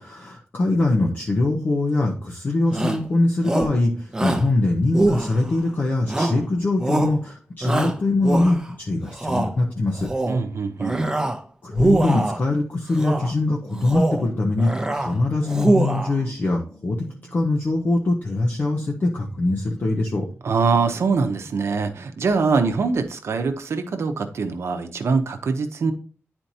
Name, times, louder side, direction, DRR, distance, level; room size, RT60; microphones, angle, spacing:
voice 1, 0.0-10.1 11.6-17.0 17.3-20.3, left 2 dB, 45° left, 0.8 m, -22 dB
Shout, 2.7-3.1 3.4-3.8 4.1-4.5 4.9-5.6 6.1-6.5 6.8-7.2 7.6-8.7 9.1-9.5 10.0-10.4 10.8-11.4 11.7-12.4 12.9-13.3 13.7-14.3 14.6-15.1 15.5-16.2, right 2 dB, 15° right, 0.7 m, -23 dB
voice 2, 10.3-11.1 20.4-25.9, right 4 dB, 70° right, 0.8 m, -23 dB
sound 1, 13.1-22.0, right 2 dB, 15° left, 1.3 m, -44 dB
10.0 x 4.4 x 2.8 m
wide cardioid pair, 165°, 5 cm